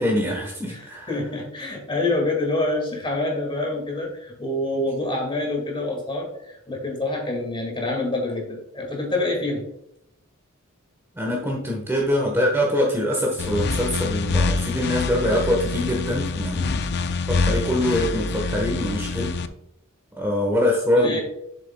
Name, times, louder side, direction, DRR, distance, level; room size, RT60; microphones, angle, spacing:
voice 1, 0.0-1.1 11.1-16.8 17.3-19.4 20.2-21.2, left 1 dB, 10° right, -1 dB, 1.2 m, -24 dB
voice 2, 0.7-9.7 20.9-21.2, left 2 dB, 25° left, 0 dB, 2.0 m, -26 dB
sound 1, 13.4-19.5, left 4 dB, 50° left, 0.4 m, -25 dB
7.5 x 6.8 x 2.2 m, 0.80 s
head